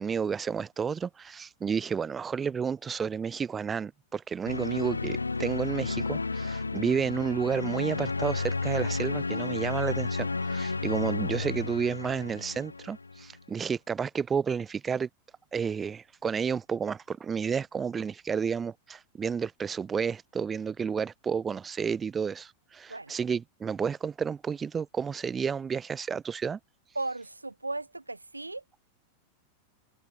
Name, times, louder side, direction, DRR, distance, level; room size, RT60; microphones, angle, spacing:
voice 1, 0.0-15.1 15.5-26.6, right 6 dB, 20° right, 1.3 m, -31 dB
sound 1, 4.5-13.3, left 3 dB, 80° left, 1.3 m, -32 dB
voice 2, 26.9-28.6, right 2 dB, 85° right, 0.9 m, -36 dB
open air
figure-of-eight pair, 90°, 0 cm